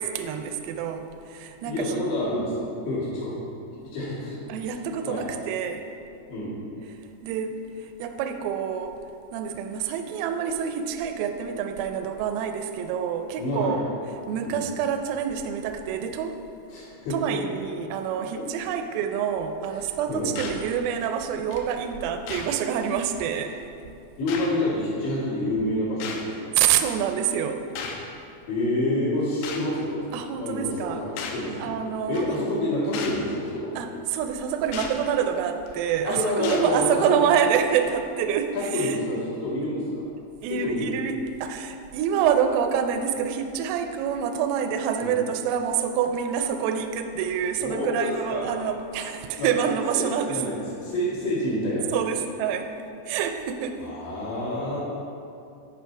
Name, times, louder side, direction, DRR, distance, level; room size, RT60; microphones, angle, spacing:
voice 1, 0.0-2.0 4.5-5.8 7.2-8.9 9.3-13.8 14.3-16.4 17.1-23.6 26.6-27.7 30.1-31.0 31.6-32.3 33.8-39.0 40.4-50.4 51.9-52.7 53.1-53.8, right 8 dB, 85° right, 6 dB, 3.1 m, -27 dB
voice 2, 1.6-2.6 2.8-3.3 3.7-4.7 5.1-5.3 6.3-6.6 13.4-13.8 14.4-14.6 16.7-17.4 18.4-18.5 19.7-20.3 24.2-26.5 28.5-31.8 32.1-33.7 36.1-37.3 38.5-40.0 40.5-40.9 45.0-45.1 47.6-48.6 49.4-49.5 49.9-52.1 53.8-54.8, left 1 dB, 65° left, -8 dB, 4.1 m, -28 dB
sound 1, 20.4-20.6 21.5-21.6 22.3-22.5 23.5-23.6 24.3-24.5 26.0-26.3 27.8-28.0 29.4-29.7 31.2-31.4 32.1-32.4 32.9-33.2 34.7-34.9 35.7-35.9 36.4-36.7 37.3-37.5, left 5 dB, 85° left, 3.4 m, -34 dB
10.0 x 5.1 x 4.5 m, 2.6 s
omnidirectional pair, 6.0 m